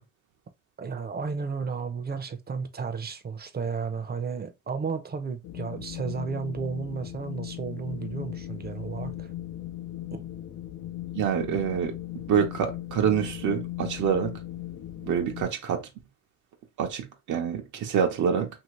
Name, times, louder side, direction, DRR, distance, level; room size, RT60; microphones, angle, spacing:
voice 1, 0.8-9.3 10.1-10.3, right 5 dB, 30° right, 0.6 m, -33 dB
Wind, 5.4-15.4, left 13 dB, 75° left, 0.7 m, -38 dB
voice 2, 11.2-12.0 12.3-14.4 15.0-15.8 16.8-18.5, right 7 dB, 75° right, 0.8 m, -26 dB
2.8 x 2.7 x 3.0 m
cardioid pair, 90°, 30 cm